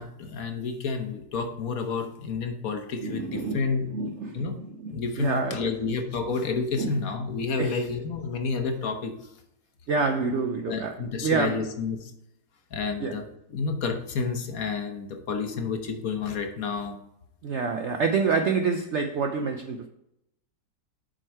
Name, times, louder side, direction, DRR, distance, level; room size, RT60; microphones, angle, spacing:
voice 1, 0.0-3.8 4.3-4.5 4.8-9.1 10.7-12.1 12.7-13.2 13.5-17.0, left 4 dB, 60° left, 5 dB, 1.3 m, -30 dB
voice 2, 3.0-5.9 6.8-7.1 7.6-7.9 9.9-11.7 13.0-13.2 17.4-19.9, right 4 dB, 70° right, 6 dB, 0.7 m, -28 dB
7.6 x 5.2 x 4.5 m, 0.80 s
omnidirectional pair, 1.8 m